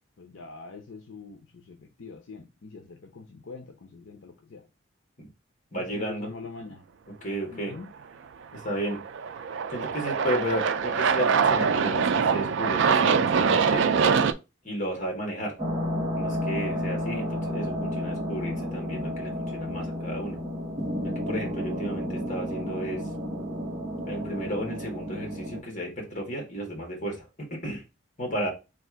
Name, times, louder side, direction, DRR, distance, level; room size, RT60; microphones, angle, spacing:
voice 1, 0.2-4.7 5.8-6.8 7.5-7.9, left 4 dB, 70° left, 4 dB, 0.6 m, -44 dB
voice 2, 5.7-6.3 6.6-6.7 7.2-7.7 8.5-9.0 9.7-13.9 14.6-15.5 16.1-20.4 21.0-23.0 24.0-27.8 28.2-28.5, equal, 40° left, 1 dB, 1.5 m, -33 dB
Aircraft, 8.6-14.3, right 6 dB, 65° right, 0.3 m, -24 dB
sound 1, 15.6-25.6, left 1 dB, 20° right, 1.0 m, -31 dB
3.4 x 2.5 x 4.5 m, 0.26 s
head